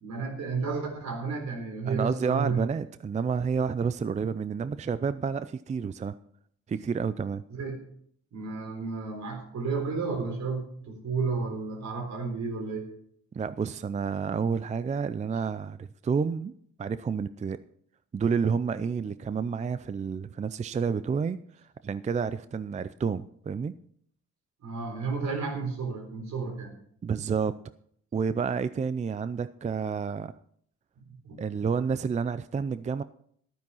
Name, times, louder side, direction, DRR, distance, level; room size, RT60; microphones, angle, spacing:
voice 1, 0.0-2.7 7.5-7.8 8.3-12.9 24.6-26.7 31.0-31.4, right 4 dB, 70° right, 3.9 m, -32 dB
voice 2, 1.9-6.1 6.7-7.4 13.3-16.5 16.8-17.6 18.1-21.4 21.8-23.7 27.0-27.5 28.1-30.3 31.4-33.0, right 6 dB, 25° right, 0.4 m, -29 dB
12.0 x 9.3 x 5.6 m
cardioid pair, 110°, 29 cm